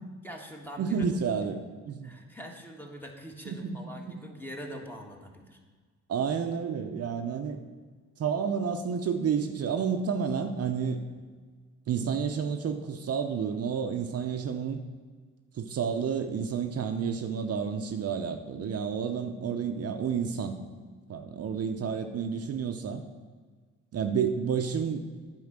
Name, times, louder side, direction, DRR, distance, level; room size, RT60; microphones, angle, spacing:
voice 1, 0.2-1.1 2.0-5.6, equal, 5° left, 1 dB, 1.6 m, -43 dB
voice 2, 0.8-2.1 3.5-3.8 4.1-4.2 6.1-7.6 8.2-11.0 11.9-14.8 15.5-20.6 21.1-23.0 23.9-25.0, right 6 dB, 55° right, 5 dB, 0.8 m, -30 dB
9.5 x 4.8 x 7.4 m, 1.5 s
cardioid pair, 90°, 30 cm